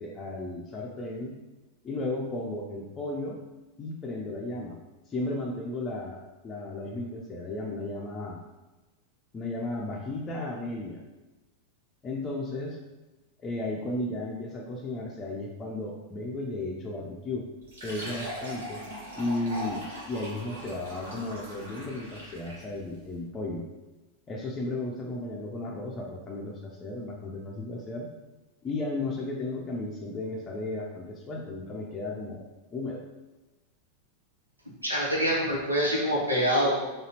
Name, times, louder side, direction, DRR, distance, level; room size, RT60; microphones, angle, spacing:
voice 1, 0.0-1.3 1.8-3.4 3.8-4.8 5.1-8.4 9.3-11.0 12.0-12.8 13.4-17.5 17.8-18.9 19.2-23.7 24.3-28.1 28.6-33.0, left 2 dB, 20° left, -2 dB, 0.5 m, -34 dB
Fill (with liquid), 17.6-22.8, equal, 65° right, 1.2 m, -40 dB
voice 2, 34.8-37.1, equal, 85° right, -4 dB, 1.0 m, -26 dB
4.0 x 3.0 x 2.9 m, 1.1 s
figure-of-eight pair, 90°, 0 cm